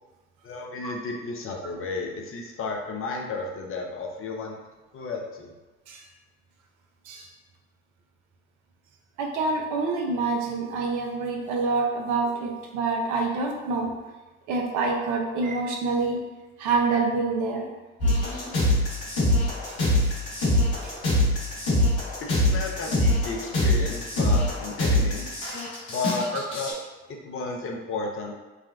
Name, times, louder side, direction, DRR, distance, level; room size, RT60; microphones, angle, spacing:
voice 1, 0.4-4.6 4.9-5.5 22.2-25.4 25.9-26.8 27.1-28.4, left 3 dB, 40° left, 0 dB, 0.6 m, -33 dB
voice 2, 9.2-13.9 14.5-16.2 16.6-17.7 19.6-21.0, right 3 dB, 65° right, 1 dB, 0.6 m, -27 dB
sound 1, 18.0-26.7, left 1 dB, 70° left, 1.2 m, -23 dB
3.5 x 2.2 x 2.3 m, 1.2 s
hypercardioid pair, 50°, 33 cm